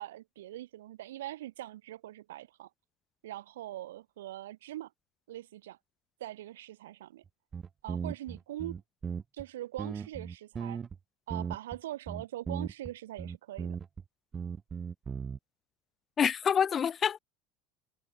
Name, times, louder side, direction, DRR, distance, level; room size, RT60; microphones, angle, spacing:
voice 1, 0.0-2.7 3.2-4.9 5.3-5.8 6.2-7.2 7.8-8.8 9.3-10.8 11.3-13.8, right 14 dB, 75° right, 6.0 m, -42 dB
sound 1, 7.3-7.4 7.5-9.4 9.8-11.0 11.3-11.8 12.1-12.9 13.2-14.0 14.3-15.4, right 6 dB, 30° right, 2.7 m, -37 dB
voice 2, 16.2-17.2, left 7 dB, 35° left, 2.6 m, -27 dB
figure-of-eight pair, 70°, 0 cm